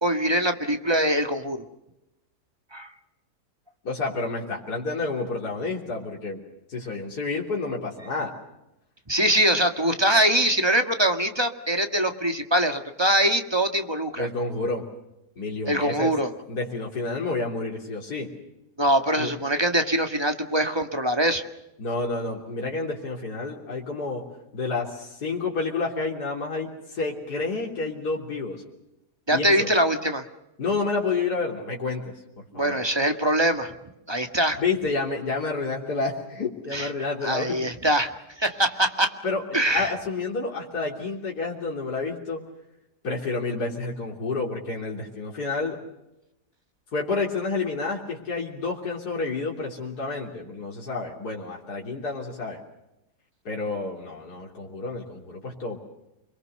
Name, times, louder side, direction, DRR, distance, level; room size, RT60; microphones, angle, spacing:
voice 1, 0.0-1.6 2.7-2.9 9.1-14.3 15.7-16.3 18.8-21.4 29.3-30.2 32.5-33.7 34.1-34.6 36.7-36.9 37.2-39.1 39.5-39.9, right 1 dB, 15° right, 6 dB, 1.8 m, -23 dB
voice 2, 3.8-6.4 6.7-8.3 14.2-14.9 15.4-16.1 16.5-18.3 19.2-19.3 21.8-24.2 24.5-28.6 29.3-29.7 30.6-32.8 34.6-37.6 39.2-42.4 43.0-45.8 46.9-52.6 53.5-55.8, left 3 dB, 75° left, -2 dB, 3.8 m, -29 dB
29.0 x 22.5 x 6.6 m, 0.92 s
omnidirectional pair, 1.7 m